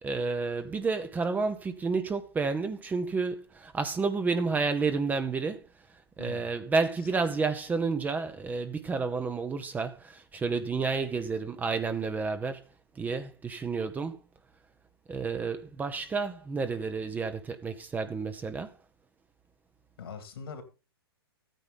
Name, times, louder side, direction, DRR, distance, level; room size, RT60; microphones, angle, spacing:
voice 1, 0.0-5.7 6.2-12.7 12.9-14.2 15.1-18.7, right 4 dB, 15° right, 0.9 m, -30 dB
voice 2, 20.0-20.6, left 6 dB, 70° left, 2.9 m, -42 dB
13.5 x 9.2 x 3.9 m
hypercardioid pair, 115°, 13 cm